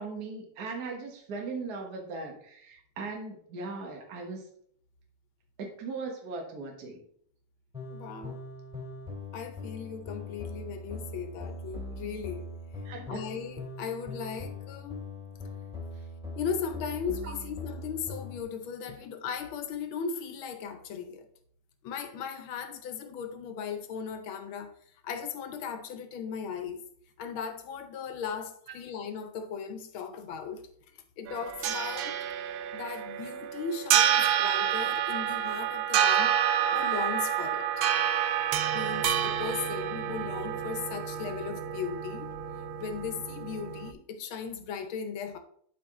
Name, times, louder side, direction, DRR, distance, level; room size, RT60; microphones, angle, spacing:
voice 1, 0.0-4.4 5.6-7.0 12.8-13.2 17.2-17.3, right 4 dB, 55° right, 1.7 m, -38 dB
sound 1, 7.7-18.4, left 2 dB, 5° right, 2.7 m, -41 dB
voice 2, 7.9-8.4 9.3-12.5 13.1-15.1 16.4-21.3 21.8-24.7 25.0-26.8 27.2-30.7 31.2-32.2 32.7-36.4 36.7-37.7 38.7-42.3 42.8-45.4, left 6 dB, 80° left, 1.7 m, -37 dB
sound 2, 31.3-43.9, right 10 dB, 80° right, 1.4 m, -29 dB
11.0 x 4.8 x 3.7 m
omnidirectional pair, 2.2 m